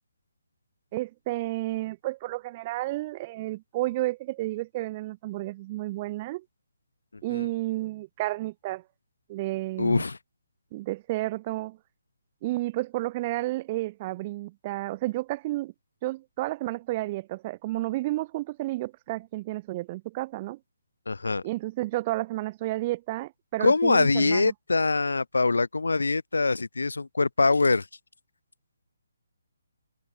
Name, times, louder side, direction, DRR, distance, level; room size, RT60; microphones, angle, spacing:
voice 1, 0.9-6.4 7.2-8.8 9.3-10.0 10.7-11.8 12.4-15.7 16.0-20.6 21.4-24.5, right 18 dB, 25° right, 2.9 m, -31 dB
voice 2, 9.8-10.2 21.1-21.4 23.6-27.9, left 3 dB, 65° left, 1.9 m, -23 dB
figure-of-eight pair, 140°, 0 cm